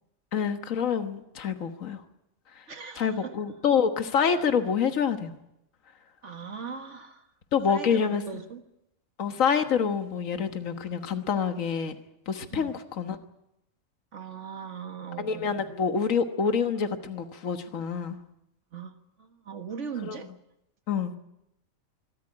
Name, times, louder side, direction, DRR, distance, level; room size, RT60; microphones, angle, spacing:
voice 1, 0.3-2.0 2.6-2.7 3.0-5.3 7.5-8.2 9.2-12.0 12.3-13.2 15.2-18.2 20.0-20.2 20.9-21.1, left 6 dB, 70° left, 8 dB, 1.7 m, -27 dB
voice 2, 2.7-3.4 6.2-7.3 7.7-8.6 12.5-12.7 14.1-15.6 18.7-20.3, right 6 dB, 60° right, 7 dB, 1.9 m, -39 dB
25.0 x 13.5 x 9.9 m, 0.85 s
omnidirectional pair, 1.4 m